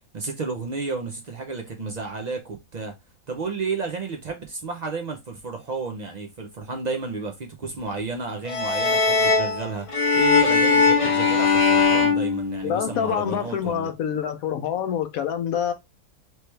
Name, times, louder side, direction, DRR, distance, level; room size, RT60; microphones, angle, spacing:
voice 1, 0.1-2.9 3.3-13.9, right 3 dB, 60° right, 0.4 m, -32 dB
sound 1, 8.5-13.1, left 4 dB, 40° left, 0.4 m, -20 dB
voice 2, 12.6-15.7, left 9 dB, 75° left, 1.1 m, -26 dB
3.2 x 3.0 x 3.2 m
omnidirectional pair, 1.5 m